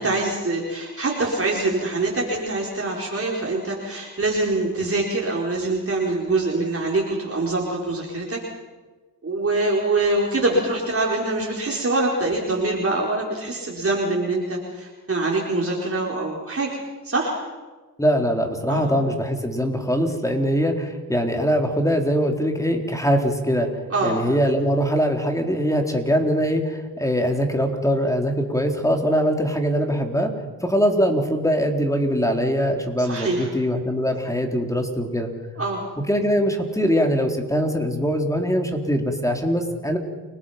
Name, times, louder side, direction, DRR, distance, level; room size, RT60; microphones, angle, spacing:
voice 1, 0.0-8.4 9.2-17.4 18.7-18.9 23.9-24.2 24.4-24.5 33.0-33.5 35.6-35.8, right 2 dB, 35° right, -3 dB, 4.7 m, -24 dB
voice 2, 18.0-23.7 24.0-30.3 30.6-35.3 36.1-40.0, equal, 10° left, 3 dB, 4.0 m, -22 dB
29.5 x 19.5 x 5.9 m, 1.3 s
cardioid pair, 65°, 39 cm